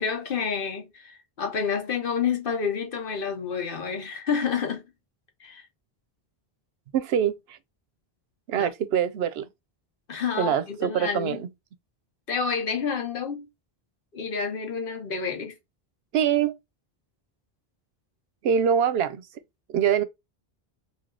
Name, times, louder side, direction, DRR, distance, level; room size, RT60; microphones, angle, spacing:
voice 1, 0.0-4.8 5.4-5.6 8.6-8.7 10.1-11.4 12.3-13.5 14.1-15.6, left 6 dB, 60° left, 1.1 m, -29 dB
voice 2, 6.9-7.6 8.5-9.5 10.4-11.5 16.1-16.6 18.4-19.2 19.7-20.0, right 8 dB, 80° right, 0.8 m, -24 dB
3.3 x 2.7 x 3.7 m
omnidirectional pair, 1.0 m